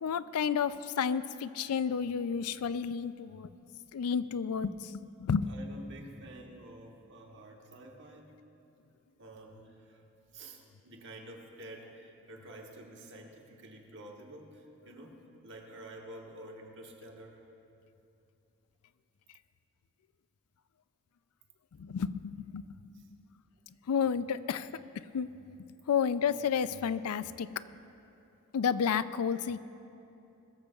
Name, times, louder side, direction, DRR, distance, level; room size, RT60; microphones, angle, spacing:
voice 1, 0.0-3.5 3.9-4.7 5.2-5.5 21.8-22.6 23.9-24.7 25.1-25.3 25.9-27.5 28.5-29.6, left 7 dB, 85° left, 15 dB, 0.4 m, -31 dB
voice 2, 5.5-8.3 9.2-10.0 10.3-17.4 22.9-23.1, right 1 dB, 55° right, 0 dB, 1.5 m, -49 dB
21.5 x 13.5 x 2.4 m, 2.8 s
head